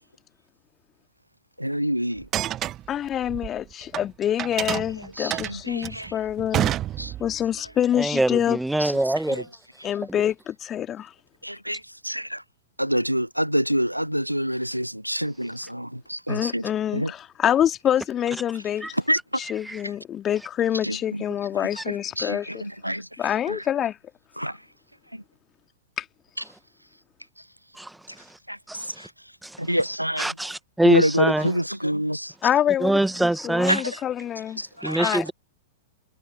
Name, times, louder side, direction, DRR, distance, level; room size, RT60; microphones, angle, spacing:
voice 1, 1.6-2.3 5.2-6.1 7.0-7.1 8.8-9.0 9.3-9.4 11.4-12.4 12.8-16.6 16.9-17.1 18.9-19.2 20.8-21.2 21.9-23.1 23.5-23.6 24.4-24.5 25.1-25.2 26.4-26.5 28.5-28.6 29.0-29.1 29.6-30.3 30.8-32.3 33.7-33.8 34.6-35.3, equal, 90° right, 0.8 m, -27 dB
sound 1, 2.2-4.0 4.4-7.5, right 13 dB, 30° right, 1.0 m, -29 dB
voice 2, 2.9-6.7 7.2-8.6 9.8-11.1 16.3-19.0 19.4-22.6 23.2-24.0 26.0-26.1 32.4-34.6 35.0-35.2, left 10 dB, 25° left, 2.3 m, -26 dB
voice 3, 8.0-9.5 10.1-10.2 18.8-18.9 19.4-19.8 21.8-21.9 27.7-28.0 28.7-29.1 29.4-29.6 30.2-31.6 32.8-34.0 34.8-35.3, right 1 dB, 5° right, 1.7 m, -24 dB
figure-of-eight pair, 100°, 0 cm